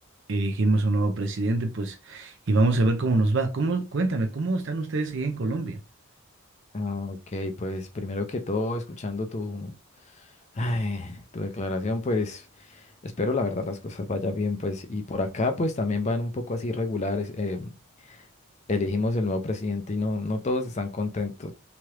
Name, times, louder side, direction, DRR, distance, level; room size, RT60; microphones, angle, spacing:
voice 1, 0.3-5.8, right 2 dB, 55° right, 0.5 m, -25 dB
voice 2, 6.7-9.7 10.5-17.7 18.1-18.2 18.7-21.5, left 2 dB, 30° left, 0.4 m, -29 dB
2.9 x 2.3 x 3.1 m
head